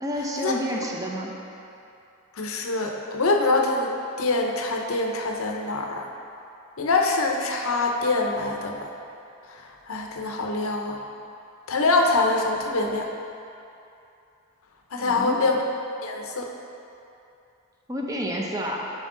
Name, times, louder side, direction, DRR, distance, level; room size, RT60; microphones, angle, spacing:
voice 1, 0.0-1.3 15.0-15.4 17.9-18.9, equal, 15° right, -1 dB, 0.6 m, -29 dB
voice 2, 2.4-3.9 4.2-6.0 6.8-8.9 9.5-11.0 11.7-13.1 14.9-15.6 16.0-16.5, left 3 dB, 70° left, 2 dB, 0.7 m, -24 dB
7.3 x 5.2 x 3.7 m, 2.7 s
head